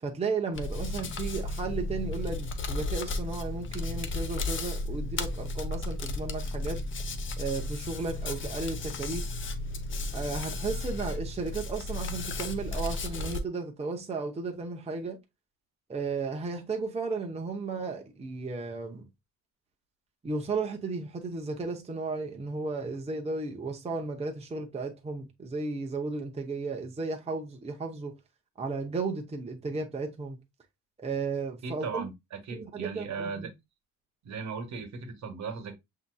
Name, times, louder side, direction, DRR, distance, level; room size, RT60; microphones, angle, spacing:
voice 1, 0.0-6.8 7.4-9.3 10.1-15.2 15.9-19.1 20.2-28.1 28.6-30.4 31.0-32.1 32.5-33.5, right 4 dB, 20° right, 0.8 m, -34 dB
Hands, 0.5-13.4, left 2 dB, 40° left, 0.7 m, -34 dB
voice 2, 31.6-33.5 34.2-35.7, right 5 dB, 55° right, 1.2 m, -37 dB
7.2 x 2.8 x 2.2 m
cardioid pair, 120°, 33 cm